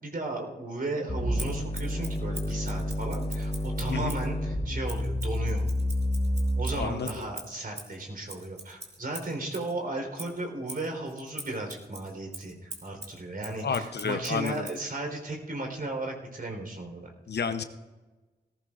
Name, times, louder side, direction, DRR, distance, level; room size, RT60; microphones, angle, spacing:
voice 1, 0.0-5.7 6.6-17.1, right 2 dB, 55° right, 2 dB, 4.0 m, -35 dB
sound 1, 1.1-7.1, left 1 dB, 30° left, 4.6 m, -29 dB
Scissors, 1.3-4.3 4.8-9.7 10.1-14.8, right 2 dB, 40° right, 3.4 m, -44 dB
voice 2, 6.7-7.3 13.6-14.7 17.3-17.6, left 6 dB, 65° left, 9 dB, 0.8 m, -31 dB
18.0 x 14.5 x 2.5 m, 1.2 s
cardioid pair, 40°, 19 cm